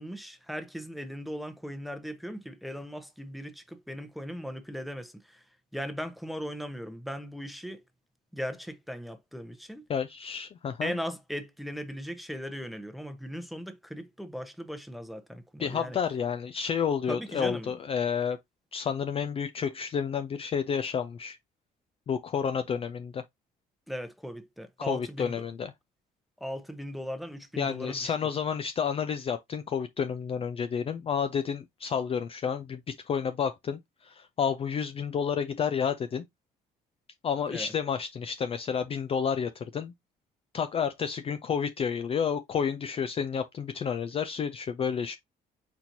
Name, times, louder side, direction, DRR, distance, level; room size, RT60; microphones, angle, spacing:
voice 1, 0.0-5.4 5.7-7.8 8.3-9.8 10.8-16.0 17.1-17.7 23.9-25.5 26.4-28.1 37.5-37.7, equal, ahead, 0.8 m, -38 dB
voice 2, 9.9-10.9 15.6-18.4 18.7-21.4 22.1-23.2 24.8-25.7 27.6-36.3 37.2-39.9 40.5-45.2, left 7 dB, 35° left, 0.4 m, -30 dB
4.5 x 4.2 x 2.6 m
cardioid pair, 110°, 17 cm